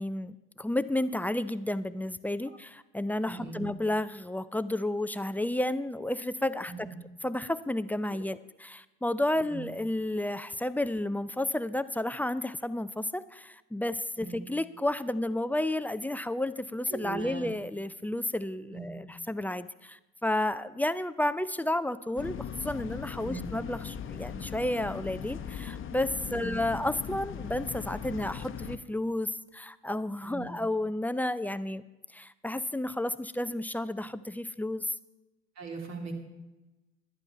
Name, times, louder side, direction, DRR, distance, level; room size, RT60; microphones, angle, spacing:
voice 1, 0.0-6.9 7.2-31.8 32.1-34.9, left 1 dB, 5° left, 14 dB, 0.3 m, -32 dB
voice 2, 3.3-3.6 6.7-6.8 8.1-8.2 9.4-9.6 14.2-14.4 16.9-17.5 18.7-18.9 23.2-23.4 26.3-26.5 30.2-30.5 35.6-36.1, right 4 dB, 55° right, 3 dB, 2.8 m, -40 dB
sound 1, 22.2-28.8, left 8 dB, 40° left, 0.9 m, -39 dB
10.5 x 10.5 x 5.6 m, 1.1 s
supercardioid pair, 85°, 33 cm